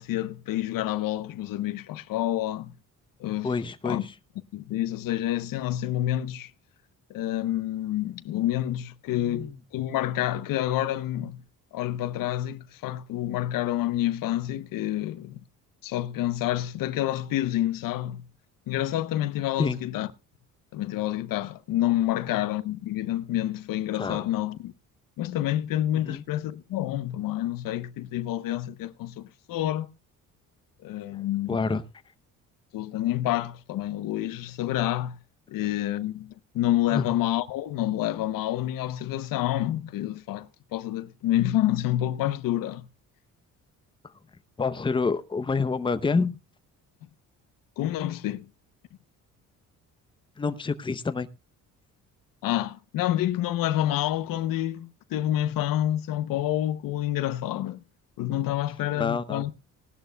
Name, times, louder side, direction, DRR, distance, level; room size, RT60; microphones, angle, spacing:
voice 1, 0.0-2.7 3.2-3.6 3.8-4.1 4.5-6.5 7.1-11.4 11.7-15.4 15.8-18.3 18.7-20.1 20.7-24.7 25.2-29.9 30.8-31.6 32.7-35.2 35.5-42.9 47.8-48.5 52.4-57.8 58.2-59.5, left 13 dB, 75° left, 0.8 m, -28 dB
voice 2, 3.4-4.1 9.2-9.6 19.6-19.8 23.9-24.2 25.9-26.2 31.1-31.8 36.9-37.1 44.6-46.4 50.4-51.3 58.9-59.4, left 4 dB, 15° left, 0.7 m, -28 dB
18.5 x 12.5 x 2.2 m
cardioid pair, 100°, 33 cm